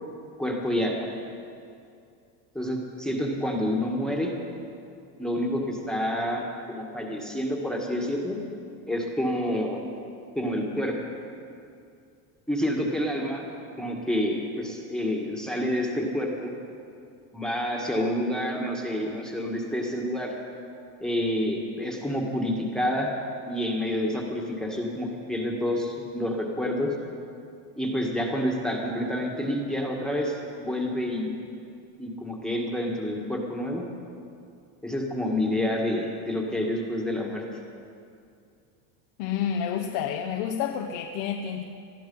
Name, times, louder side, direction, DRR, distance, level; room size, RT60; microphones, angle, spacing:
voice 1, 0.4-1.1 2.5-4.3 5.2-8.4 8.9-9.8 10.3-10.9 12.5-13.5 13.8-16.5 17.3-20.3 21.0-23.1 23.5-26.9 27.8-31.3 32.0-33.8 34.8-37.4, left 1 dB, ahead, 0 dB, 1.7 m, -28 dB
voice 2, 39.2-41.6, left 8 dB, 75° left, 4 dB, 1.1 m, -29 dB
20.0 x 12.5 x 5.5 m, 2.5 s
cardioid pair, 135°, 46 cm